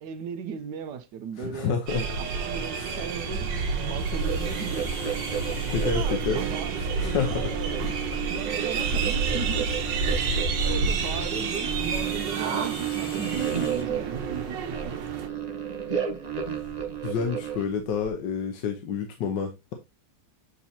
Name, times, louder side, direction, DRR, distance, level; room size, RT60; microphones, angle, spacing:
voice 1, 0.0-3.5 3.8-4.8 5.5-8.0 8.2-9.7 10.1-10.2 10.6-14.6 14.8-14.9, right 7 dB, 75° right, 1.3 m, -37 dB
voice 2, 1.4-2.0 2.8-3.0 5.7-6.4 6.8-7.3 8.8-8.9 17.0-19.7, left 6 dB, 75° left, 1.5 m, -29 dB
sound 1, 1.9-15.3, right 4 dB, 90° right, 1.6 m, -29 dB
sound 2, 4.0-18.1, left 3 dB, 40° left, 0.9 m, -48 dB
sound 3, 4.1-17.7, right 8 dB, 40° right, 0.5 m, -33 dB
8.3 x 4.3 x 2.7 m
omnidirectional pair, 1.9 m